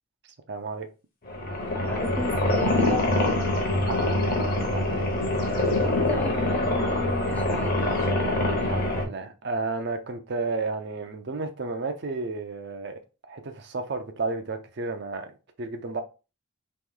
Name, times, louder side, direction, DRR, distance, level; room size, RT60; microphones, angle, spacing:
voice 1, 0.2-0.9 3.9-5.1 8.7-13.0 13.3-16.0, right 3 dB, 50° right, 0.5 m, -32 dB
sound 1, 1.3-9.0, left 1 dB, 45° left, 0.9 m, -25 dB
voice 2, 1.9-3.6 5.8-7.8, left 2 dB, 5° left, 0.5 m, -34 dB
3.0 x 3.0 x 3.6 m
head